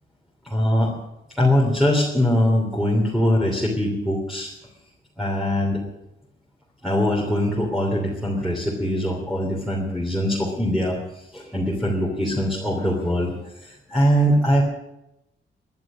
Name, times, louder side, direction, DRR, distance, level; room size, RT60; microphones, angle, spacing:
voice 1, 0.4-0.9 1.4-4.5 5.2-5.8 6.8-11.0 11.3-13.3 13.9-14.6, equal, ahead, -3 dB, 3.1 m, -22 dB
18.5 x 11.5 x 6.3 m, 0.89 s
wide cardioid pair, 145°, 21 cm